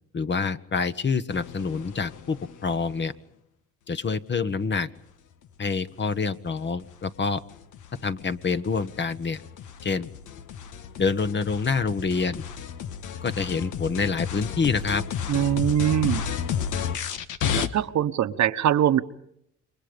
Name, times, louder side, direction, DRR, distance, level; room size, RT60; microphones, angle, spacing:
voice 1, 0.1-3.1 3.9-4.9 5.6-7.4 8.0-9.4 9.8-10.1 11.0-12.4 13.2-15.0, left 5 dB, 40° left, 12 dB, 1.2 m, -27 dB
sound 1, 1.3-3.1 5.9-17.7, left 8 dB, 85° left, 1.5 m, -33 dB
voice 2, 15.3-16.2 17.5-19.0, right 10 dB, 65° right, 10 dB, 1.2 m, -22 dB
28.5 x 23.0 x 5.2 m, 0.73 s
cardioid pair, 90°, 30 cm